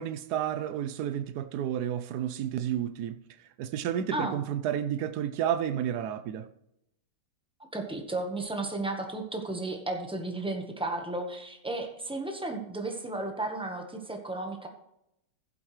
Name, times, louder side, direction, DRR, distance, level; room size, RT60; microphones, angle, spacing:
voice 1, 0.0-3.2 3.6-6.5, right 10 dB, 85° right, 0.8 m, -31 dB
voice 2, 4.1-4.4 7.7-14.7, right 2 dB, 5° right, 0.5 m, -34 dB
15.0 x 7.9 x 3.2 m
omnidirectional pair, 2.3 m